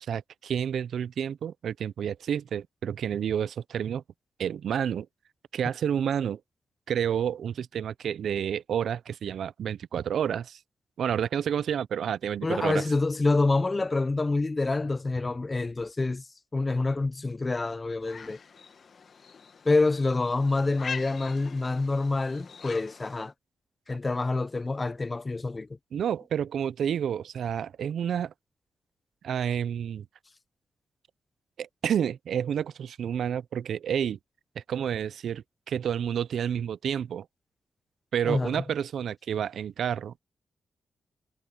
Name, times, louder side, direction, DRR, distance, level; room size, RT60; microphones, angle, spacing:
voice 1, 0.1-4.0 4.4-5.1 5.5-6.4 6.9-10.6 11.0-12.8 25.9-28.3 29.2-30.1 31.6-34.2 34.6-37.3 38.1-40.2, right 8 dB, 75° right, 0.5 m, -29 dB
voice 2, 12.4-16.2 16.5-18.4 19.6-23.3 23.9-25.7 38.2-38.6, left 3 dB, 30° left, 0.9 m, -27 dB
sound 1, 18.0-23.3, left 5 dB, 60° left, 1.8 m, -43 dB
cardioid pair, 60°, 0 cm